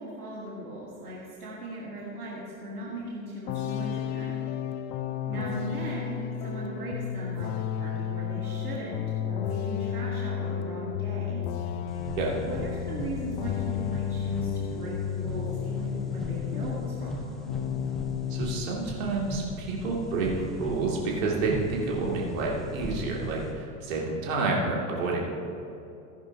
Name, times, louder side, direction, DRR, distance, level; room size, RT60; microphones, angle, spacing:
voice 1, 0.0-4.4 5.3-11.4 12.4-17.1, right 1 dB, 80° right, -5 dB, 2.1 m, -38 dB
sound 1, 3.5-17.2 17.5-18.7, left 9 dB, 45° left, 0.7 m, -32 dB
sound 2, 11.9-23.5, left 1 dB, ahead, 1.4 m, -39 dB
voice 2, 18.3-25.2, right 3 dB, 60° right, -2 dB, 2.5 m, -29 dB
15.0 x 10.5 x 2.8 m, 2.8 s
figure-of-eight pair, 85°, 44 cm